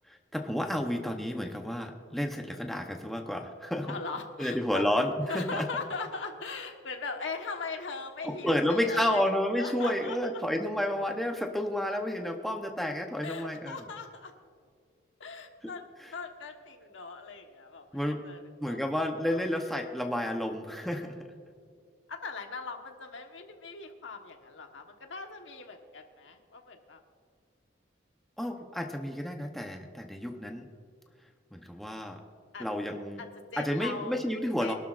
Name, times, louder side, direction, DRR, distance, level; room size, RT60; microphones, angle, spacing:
voice 1, 0.1-4.0 4.4-5.7 8.2-13.9 16.0-16.1 17.9-18.2 18.6-21.2 28.4-30.7 31.5-32.2 32.6-33.2 33.6-34.7, left 1 dB, ahead, 3 dB, 0.8 m, -31 dB
voice 2, 3.9-4.9 5.3-9.3 9.6-10.2 13.2-14.3 15.2-15.8 16.1-18.0 18.2-18.4 18.7-18.8 19.3-19.5 22.1-27.0 32.5-32.7 33.2-34.2 34.6-34.7, left 4 dB, 85° left, 4 dB, 1.3 m, -40 dB
24.0 x 12.0 x 2.5 m, 2.1 s
head